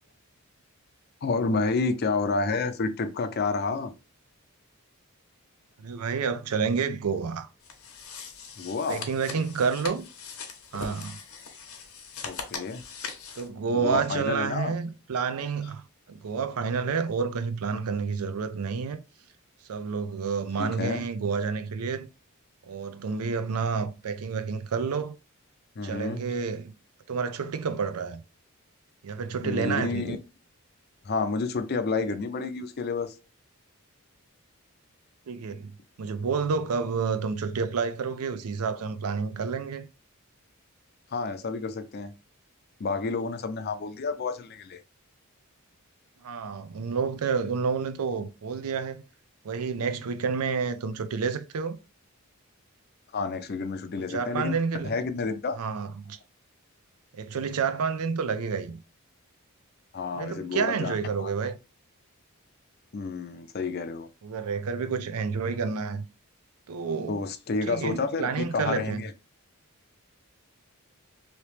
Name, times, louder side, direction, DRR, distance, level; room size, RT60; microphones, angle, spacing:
voice 1, 1.2-4.0 8.6-9.1 12.2-12.8 13.7-14.7 20.6-21.0 25.8-26.2 29.4-30.2 31.0-33.2 41.1-42.1 42.8-44.8 53.1-54.5 54.8-55.6 59.9-61.5 62.9-64.1 67.1-69.1, left 4 dB, 45° left, 0.4 m, -30 dB
voice 2, 5.8-7.5 8.9-10.1 10.7-11.2 13.4-15.8 16.1-19.0 19.7-22.1 22.7-25.1 25.8-26.7 27.1-28.2 29.0-30.2 35.3-39.9 46.2-49.0 49.4-51.8 54.1-54.9 55.6-56.2 57.1-58.8 60.1-61.6 64.2-66.0 66.7-67.2 67.7-69.0, right 5 dB, 85° right, 0.5 m, -29 dB
sound 1, 7.6-13.5, left 5 dB, 70° left, 0.8 m, -41 dB
3.0 x 2.9 x 3.2 m
head